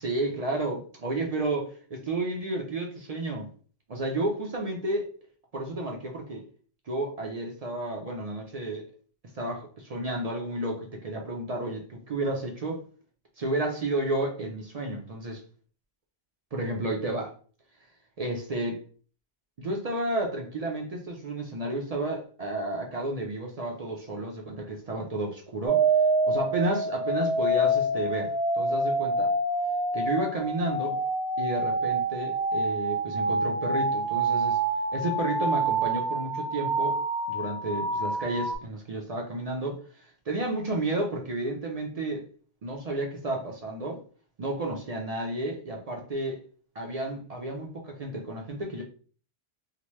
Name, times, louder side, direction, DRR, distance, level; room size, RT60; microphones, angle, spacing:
voice 1, 0.0-3.5 3.9-5.0 5.5-6.4 6.9-8.9 9.3-12.8 13.4-15.4 16.5-17.3 18.2-18.8 19.6-25.8 26.3-29.3 29.9-31.0 31.4-34.6 34.9-37.0 37.3-42.2 42.6-44.0 44.4-46.4 46.8-48.8, right 2 dB, 50° right, 1 dB, 0.5 m, -31 dB
sound 1, 25.7-38.6, right 2 dB, 90° right, 1.2 m, -27 dB
2.8 x 2.1 x 3.0 m, 0.42 s
omnidirectional pair, 1.1 m